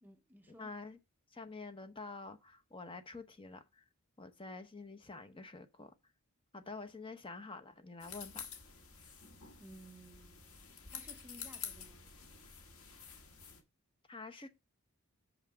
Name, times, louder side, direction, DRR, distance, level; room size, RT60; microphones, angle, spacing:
voice 1, 0.0-0.8 9.6-10.5 10.9-12.1, right 1 dB, 10° right, 0.6 m, -57 dB
voice 2, 0.6-1.0 1.3-3.8 4.2-6.0 6.5-8.5 14.1-14.5, left 3 dB, 25° left, 0.8 m, -48 dB
sound 1, 8.0-13.6, left 7 dB, 90° left, 1.5 m, -49 dB
6.4 x 5.7 x 4.8 m
head